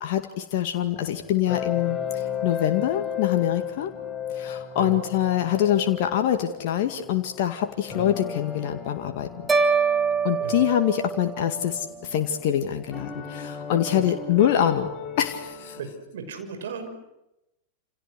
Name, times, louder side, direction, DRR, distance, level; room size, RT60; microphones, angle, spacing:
voice 1, 0.0-3.9 4.3-9.3 10.2-14.9 15.2-15.8, left 11 dB, 50° left, 6 dB, 2.1 m, -25 dB
sound 1, 0.8-15.8, left 8 dB, 20° left, 4.4 m, -35 dB
sound 2, 9.5-11.8, right 5 dB, 15° right, 3.5 m, -24 dB
voice 2, 15.8-16.9, right 6 dB, 60° right, 6 dB, 6.2 m, -36 dB
29.0 x 28.5 x 6.5 m, 0.89 s
figure-of-eight pair, 90°, 0 cm